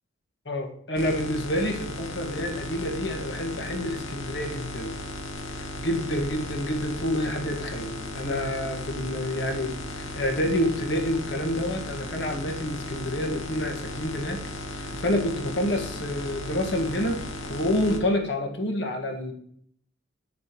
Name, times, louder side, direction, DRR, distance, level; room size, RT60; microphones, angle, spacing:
voice 1, 0.4-5.0 5.8-14.5 14.7-17.2 17.5-19.3, left 1 dB, 60° left, 3 dB, 1.7 m, -28 dB
sound 1, 1.0-18.0, left 1 dB, 80° left, 1.3 m, -36 dB
8.5 x 8.2 x 3.1 m, 0.65 s
head